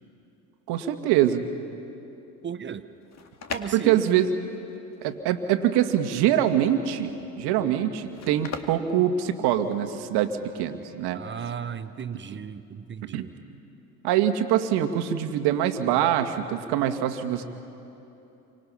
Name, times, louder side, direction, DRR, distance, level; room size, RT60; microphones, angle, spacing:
voice 1, 0.7-1.4 3.7-4.3 5.0-11.2 13.1-13.2 14.0-17.4, right 10 dB, 55° right, 7 dB, 1.9 m, -24 dB
voice 2, 2.4-2.9 3.5-4.2 11.1-13.3, right 7 dB, 25° right, 12 dB, 0.8 m, -35 dB
sound 1, 2.9-9.9, left 5 dB, 35° left, 2.0 m, -41 dB
29.5 x 25.0 x 5.8 m, 2.9 s
hypercardioid pair, 75°, 46 cm